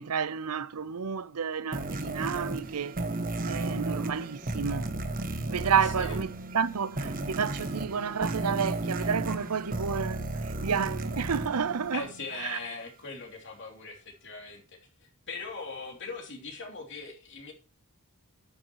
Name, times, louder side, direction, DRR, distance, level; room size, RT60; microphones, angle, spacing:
voice 1, 0.0-3.0 3.4-4.9 5.5-12.1 12.4-12.6, right 6 dB, 85° right, 0.7 m, -30 dB
sound 1, 1.7-12.5, right 2 dB, 40° right, 1.4 m, -34 dB
voice 2, 5.7-6.2 11.9-17.5, left 4 dB, 55° left, 3.0 m, -40 dB
13.0 x 8.9 x 3.0 m
head